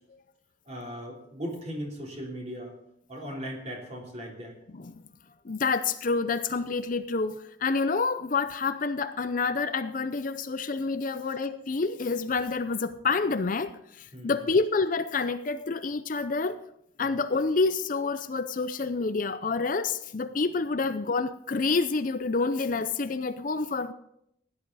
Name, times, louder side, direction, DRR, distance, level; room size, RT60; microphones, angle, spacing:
voice 1, 0.7-2.7 3.1-4.5 14.1-14.5 17.0-17.1 20.3-20.4, equal, 35° right, -1 dB, 3.6 m, -38 dB
voice 2, 5.4-16.6 17.0-23.9, left 4 dB, 40° left, 11 dB, 0.5 m, -28 dB
16.0 x 10.5 x 4.1 m, 0.74 s
head